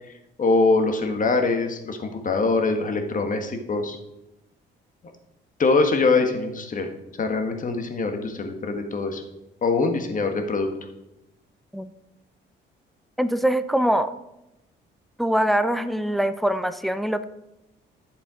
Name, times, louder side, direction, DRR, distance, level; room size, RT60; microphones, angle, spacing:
voice 1, 0.4-4.0 5.6-9.2 9.6-10.7, left 3 dB, 40° left, 5 dB, 1.6 m, -23 dB
voice 2, 13.2-14.1 15.2-17.2, right 1 dB, ahead, 11 dB, 0.6 m, -23 dB
11.0 x 7.0 x 5.0 m, 0.91 s
cardioid pair, 90°, 20 cm